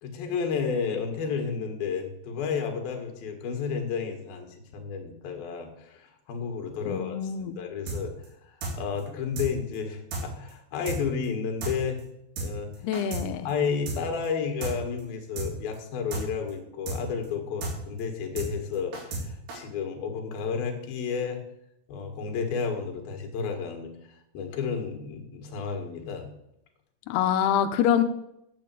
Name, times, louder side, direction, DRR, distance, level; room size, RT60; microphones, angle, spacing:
voice 1, 0.0-12.0 12.4-12.9 13.4-21.4 21.9-26.3, left 6 dB, 60° left, 4 dB, 3.0 m, -32 dB
voice 2, 6.8-7.6 12.8-13.5 27.1-28.0, left 9 dB, 90° left, 7 dB, 2.2 m, -25 dB
sound 1, 7.9-8.3 8.6-8.7 9.0-9.1 9.4-9.5 9.7-9.8 10.1-10.2 10.5-10.6 10.9-11.0 11.2-11.3 11.6-11.7 12.0-12.1 12.4-12.5 12.7-13.2 13.5-13.6 13.9-14.0 14.2-14.3 14.6-14.7 15.0-15.1 15.4-15.5 15.7-15.8 16.1-16.2 16.5-16.6 16.9-17.0 17.2-17.3 17.6-17.7 18.0-18.1 18.4-18.5 18.7-19.2 19.5-19.6, right 2 dB, 80° right, 5.9 m, -32 dB
8.8 x 8.6 x 8.4 m, 0.82 s
omnidirectional pair, 5.6 m